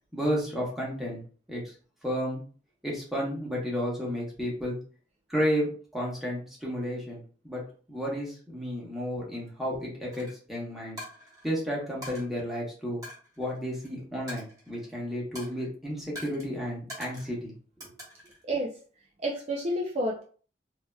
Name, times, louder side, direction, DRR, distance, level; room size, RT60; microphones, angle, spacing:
voice 1, 0.1-1.2 1.5-1.6 2.0-2.4 2.8-4.8 5.3-7.2 7.4-7.6 7.9-11.0 11.4-13.0 13.4-17.5, equal, ahead, -4 dB, 1.1 m, -32 dB
Coin (dropping), 10.1-10.3 11.0-11.5 12.0-12.2 13.0-13.9 14.3-14.9 15.4-15.7 16.2-16.5 16.9-17.4 17.8-18.4, left 1 dB, 20° right, 1.4 m, -43 dB
voice 2, 19.2-20.2, right 1 dB, 35° right, -1 dB, 0.4 m, -29 dB
3.2 x 2.8 x 2.2 m, 0.41 s
head